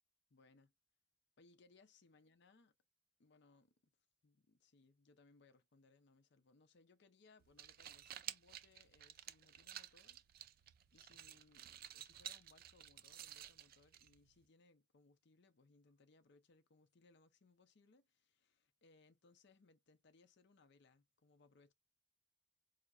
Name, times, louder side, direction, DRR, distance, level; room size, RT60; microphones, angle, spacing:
voice 1, 0.3-0.7 1.4-2.7 3.2-3.7 4.2-21.7, left 3 dB, 65° left, 0.6 m, -70 dB
sound 1, 7.4-14.4, right 11 dB, 50° right, 0.4 m, -53 dB
5.5 x 2.1 x 2.4 m
head